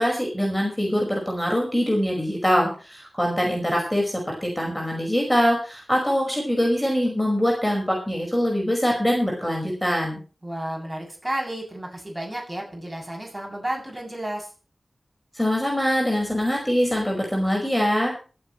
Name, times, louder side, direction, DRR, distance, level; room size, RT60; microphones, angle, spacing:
voice 1, 0.0-10.2 15.3-18.2, equal, 10° left, 0 dB, 5.2 m, -23 dB
voice 2, 10.4-14.5, right 1 dB, 20° right, 0 dB, 7.5 m, -32 dB
26.5 x 8.9 x 3.2 m, 0.35 s
wide cardioid pair, 60°, 0 cm